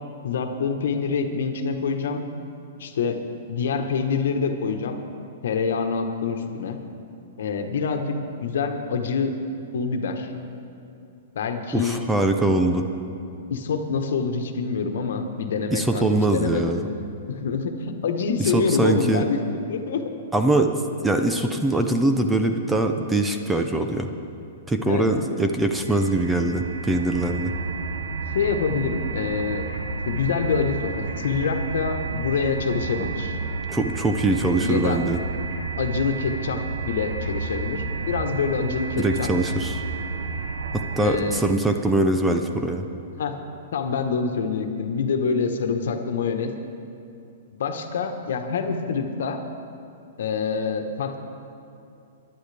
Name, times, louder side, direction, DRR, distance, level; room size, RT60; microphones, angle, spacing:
voice 1, 0.2-2.2 2.8-5.0 5.4-6.8 7.4-9.4 9.7-10.3 11.3-12.0 13.5-16.8 17.3-20.0 21.5-21.6 24.9-25.1 27.3-27.4 28.3-29.6 30.0-33.4 34.6-35.0 35.8-39.3 41.0-41.4 43.1-43.3 43.7-46.5 47.6-49.4 50.2-51.2, left 5 dB, 75° left, 6 dB, 1.2 m, -26 dB
voice 2, 11.7-12.8 15.7-16.8 18.4-19.2 20.3-20.8 21.0-24.1 24.7-27.5 33.7-35.2 39.0-39.8 41.0-42.8, right 2 dB, 5° right, 5 dB, 0.6 m, -22 dB
sound 1, 25.5-41.7, right 4 dB, 80° right, 1.0 m, -31 dB
23.5 x 11.5 x 3.4 m, 2.6 s
hypercardioid pair, 160°, 0 cm